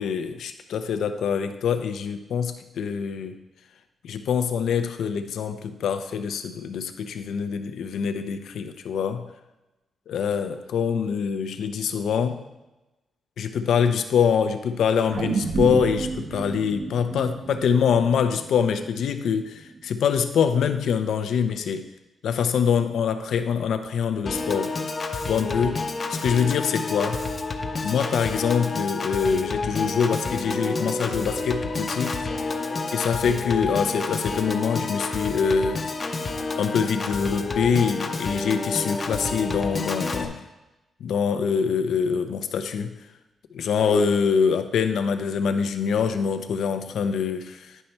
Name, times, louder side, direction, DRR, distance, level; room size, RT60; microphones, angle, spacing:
voice 1, 0.0-3.4 4.0-9.3 10.1-12.4 13.4-21.9 22.2-24.7 25.3-25.8 26.1-27.2 27.8-32.2 32.9-35.8 36.6-40.4 41.0-42.9 43.5-47.8, left 6 dB, 80° left, 8 dB, 0.7 m, -24 dB
sound 1, 15.1-19.6 20.0-20.1, right 4 dB, 45° right, 0.8 m, -30 dB
Piano / Organ, 24.3-40.3, left 3 dB, 30° left, 0.7 m, -29 dB
10.0 x 5.4 x 4.5 m, 1.0 s
wide cardioid pair, 150°, 0 cm